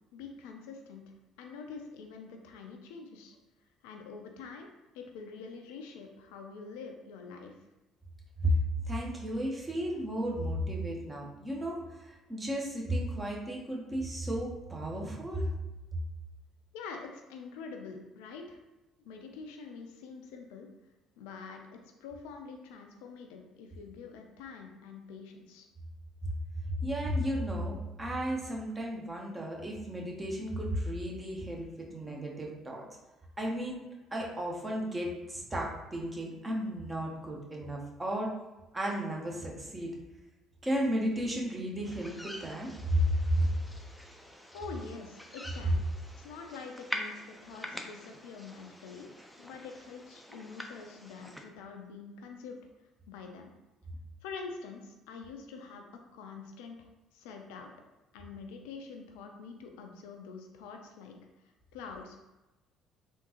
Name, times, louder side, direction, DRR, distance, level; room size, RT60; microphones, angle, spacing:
voice 1, 0.1-1.0 1.4-3.4 3.8-4.7 4.9-7.5 16.7-18.6 19.0-20.7 21.2-25.7 44.5-45.8 46.1-49.1 49.4-52.6 53.1-53.5 54.2-56.8 57.1-57.7 58.1-62.2, left 5 dB, 70° left, 3 dB, 0.4 m, -46 dB
voice 2, 8.9-15.5 26.6-32.9 33.4-33.8 34.1-38.3 38.7-40.0 40.6-43.0 43.3-43.4, right 1 dB, 20° right, -2 dB, 1.0 m, -34 dB
sound 1, 41.8-51.4, left 1 dB, ahead, 0.5 m, -45 dB
3.6 x 2.5 x 2.8 m, 1.1 s
figure-of-eight pair, 50°, 0 cm